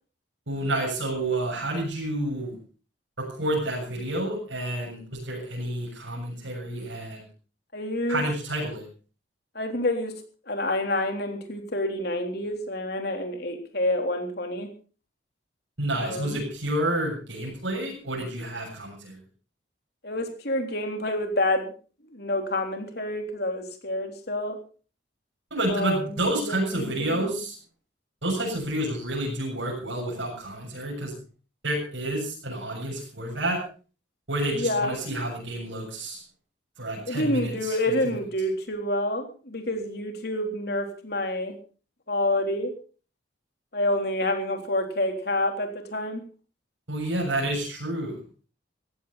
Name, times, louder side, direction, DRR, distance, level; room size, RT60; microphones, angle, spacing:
voice 1, 0.5-2.6 3.2-7.3 8.1-8.8 15.8-19.2 25.5-27.6 28.2-31.1 31.6-33.6 34.3-36.2 36.8-37.7 46.9-48.2, right 1 dB, 75° right, -2 dB, 7.1 m, -29 dB
voice 2, 7.7-8.2 9.6-10.1 10.5-14.7 16.0-16.4 20.0-21.7 22.1-24.6 25.7-26.2 26.5-27.3 34.5-35.0 37.1-41.5 42.1-42.7 43.7-46.2, left 1 dB, 55° left, 4 dB, 3.5 m, -28 dB
18.0 x 15.5 x 4.2 m, 0.37 s
head